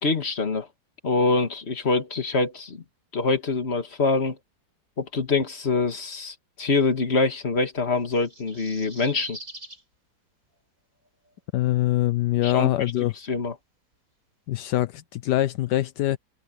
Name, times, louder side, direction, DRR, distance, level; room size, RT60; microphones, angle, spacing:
voice 1, 0.0-0.7 1.0-2.8 3.1-4.4 5.0-9.4 12.4-12.7 13.3-13.5, left 3 dB, 40° left, 2.1 m, -25 dB
sound 1, 8.0-9.8 11.2-11.3, right 1 dB, 50° right, 8.0 m, -42 dB
voice 2, 11.5-13.1 14.5-16.2, left 14 dB, 80° left, 1.3 m, -23 dB
omnidirectional pair, 1.8 m